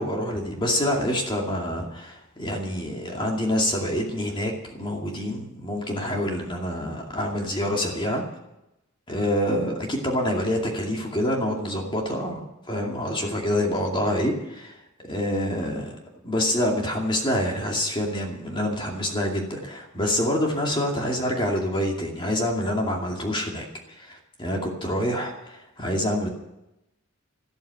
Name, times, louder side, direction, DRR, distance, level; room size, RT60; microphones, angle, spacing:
voice 1, 0.0-8.2 9.1-14.8 15.1-15.9 16.2-26.3, left 1 dB, 25° left, 0 dB, 2.4 m, -26 dB
13.5 x 13.0 x 7.0 m, 0.90 s
head